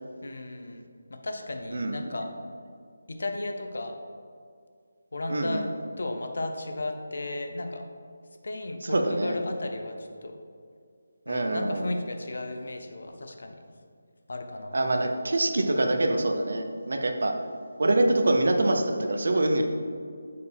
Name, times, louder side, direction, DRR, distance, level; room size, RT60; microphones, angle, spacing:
voice 1, 0.2-0.8 1.1-2.3 3.1-4.0 5.1-5.7 6.0-7.8 8.4-10.4 11.3-13.6 14.3-14.8, left 2 dB, 65° left, 5 dB, 0.7 m, -34 dB
voice 2, 1.7-2.1 5.3-5.6 8.8-9.4 11.3-11.9 14.7-17.3 17.8-19.6, right 2 dB, 65° right, 4 dB, 0.6 m, -25 dB
6.5 x 4.6 x 3.4 m, 2.2 s
figure-of-eight pair, 170°, 0 cm